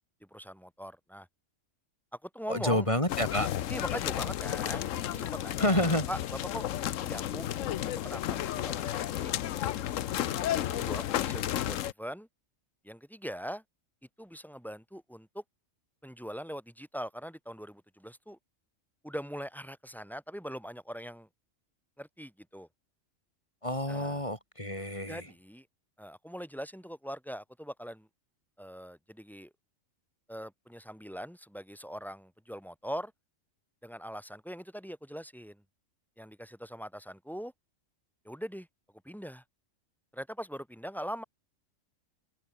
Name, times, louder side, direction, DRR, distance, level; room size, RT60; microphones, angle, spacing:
voice 1, 0.2-1.3 2.2-2.9 3.7-6.2 6.5-6.7 7.0-7.8 8.0-9.4 10.7-12.3 12.8-13.6 14.2-15.4 16.0-18.4 19.0-21.3 22.0-22.7 23.9-24.2 25.1-25.7 26.0-28.1 28.6-29.5 30.3-33.1 33.8-35.6 36.2-37.5 38.3-38.7 39.0-39.4 40.1-41.2, equal, ahead, 5.3 m, -41 dB
voice 2, 2.5-3.5 5.6-6.1 23.6-25.3, left 1 dB, 25° left, 3.9 m, -29 dB
sound 1, 3.1-11.9, left 11 dB, 80° left, 1.1 m, -32 dB
open air
omnidirectional pair, 1.3 m